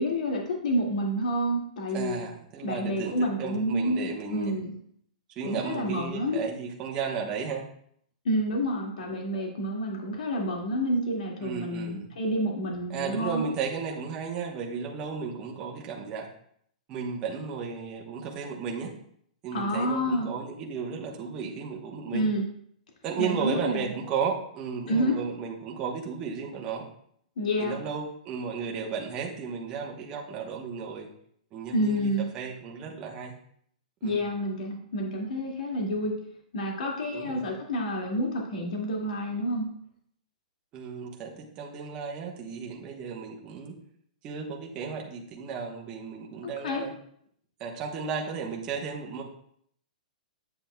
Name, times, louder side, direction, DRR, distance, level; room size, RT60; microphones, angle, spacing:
voice 1, 0.0-2.2 2.6-4.7 5.4-6.4 8.2-13.4 19.5-20.3 22.1-22.4 23.2-23.9 24.9-25.2 27.4-27.8 31.7-32.3 34.0-36.1 36.5-39.7 46.6-46.9, equal, 70° left, 0 dB, 2.0 m, -29 dB
voice 2, 1.9-4.6 5.4-7.7 11.4-12.1 12.9-16.3 16.9-18.9 19.4-22.3 23.0-26.9 27.6-31.1 31.5-33.3 34.0-34.2 37.1-37.5 40.7-43.8 44.2-46.9 47.6-49.2, right 6 dB, 20° right, -1 dB, 1.0 m, -34 dB
8.7 x 7.6 x 2.2 m, 0.65 s
hypercardioid pair, 165°, 4 cm